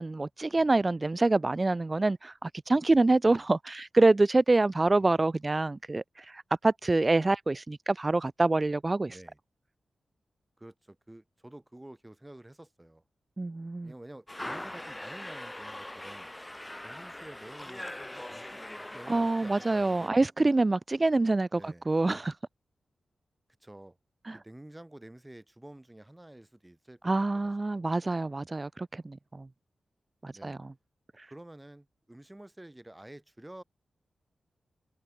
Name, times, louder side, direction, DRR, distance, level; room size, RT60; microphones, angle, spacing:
voice 1, 0.0-6.0 6.3-9.1 13.4-13.9 19.1-22.3 24.3-24.4 27.0-29.5 30.2-30.6, right 2 dB, 30° right, 0.6 m, -26 dB
voice 2, 10.6-13.0 13.8-16.3 16.8-18.6 18.9-20.1 21.6-21.9 23.6-24.0 24.3-27.9 30.3-30.6 31.3-33.6, right 1 dB, 15° right, 3.5 m, -50 dB
sound 1, 14.3-20.1, left 1 dB, 15° left, 0.5 m, -42 dB
cardioid pair, 70°, 0 cm